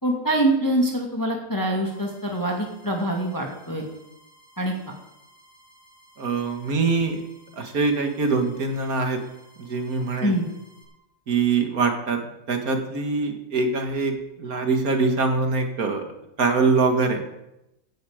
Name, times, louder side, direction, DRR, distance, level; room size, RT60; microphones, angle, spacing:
voice 1, 0.0-3.9 4.6-4.7 10.2-10.5, right 1 dB, 10° left, 0 dB, 2.0 m, -24 dB
sound 1, 1.8-10.8, right 1 dB, 50° left, 6.1 m, -56 dB
voice 2, 6.2-7.2 7.6-9.2 9.7-10.3 11.3-12.2 12.5-14.1 14.4-16.0 16.4-17.2, right 4 dB, 60° right, 5 dB, 2.2 m, -23 dB
16.0 x 10.5 x 5.1 m, 0.89 s
omnidirectional pair, 1.7 m